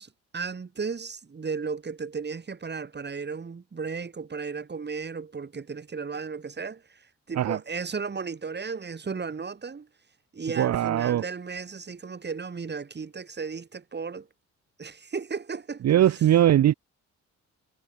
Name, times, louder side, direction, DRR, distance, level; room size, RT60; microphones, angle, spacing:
voice 1, 0.0-9.9 10.3-14.3 14.8-16.2, right 5 dB, 35° right, 7.1 m, -35 dB
voice 2, 10.6-11.2 15.8-16.7, right 11 dB, 60° right, 1.1 m, -20 dB
cardioid pair, 90°, 30 cm